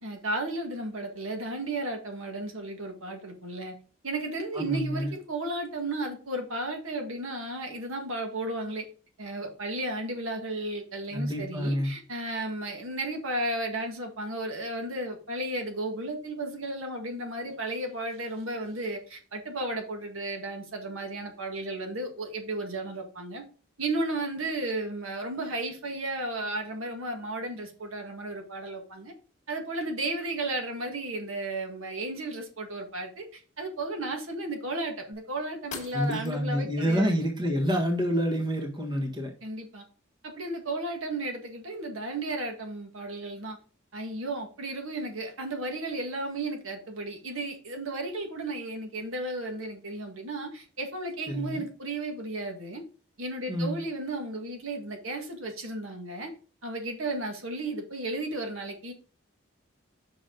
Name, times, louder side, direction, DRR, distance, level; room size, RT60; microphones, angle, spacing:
voice 1, 0.0-3.8 4.0-8.9 9.2-23.4 23.8-29.1 29.5-37.1 39.4-39.8 40.2-43.6 43.9-52.8 53.2-56.3 56.6-58.9, right 2 dB, 90° right, 3 dB, 1.7 m, -34 dB
voice 2, 4.5-5.1 11.1-11.9 35.9-39.3 51.3-51.6 53.5-53.8, equal, 20° right, 0 dB, 1.6 m, -28 dB
sound 1, 35.1-35.2 35.7-36.6, left 4 dB, 35° left, 1.7 m, -42 dB
6.2 x 6.1 x 3.8 m, 0.38 s
head